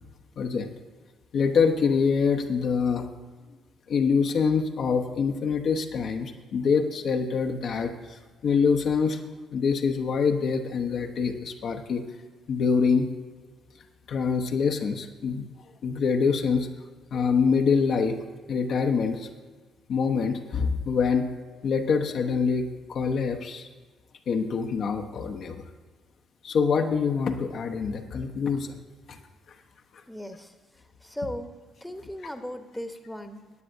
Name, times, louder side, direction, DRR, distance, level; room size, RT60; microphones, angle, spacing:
voice 1, 0.4-0.7 1.3-3.1 3.9-9.2 9.5-12.0 12.5-13.1 14.1-15.5 15.8-16.7 17.1-18.2 18.5-19.3 19.9-21.3 21.6-23.7 24.3-25.6 26.4-28.8 29.1-29.2, left 5 dB, 55° left, 4 dB, 0.8 m, -25 dB
voice 2, 30.1-30.5 31.0-31.5 31.8-33.4, left 1 dB, 5° left, 8 dB, 1.0 m, -37 dB
17.5 x 9.8 x 2.6 m, 1.4 s
hypercardioid pair, 45°, 0 cm